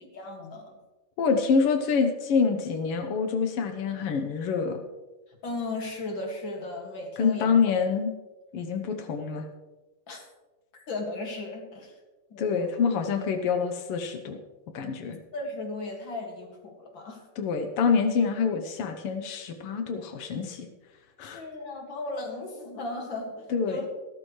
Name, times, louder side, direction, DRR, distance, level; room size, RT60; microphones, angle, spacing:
voice 1, 0.1-0.7 5.4-7.6 10.1-10.2 10.9-11.9 12.3-12.7 15.3-17.2 21.2-23.9, left 2 dB, 40° left, 1 dB, 2.3 m, -36 dB
voice 2, 1.2-4.8 7.2-8.1 8.5-9.4 12.4-14.4 14.7-15.2 17.4-20.7 21.2-21.4 23.5-23.9, left 5 dB, 85° left, 6 dB, 1.2 m, -26 dB
14.5 x 13.5 x 3.2 m, 1.2 s
omnidirectional pair, 3.8 m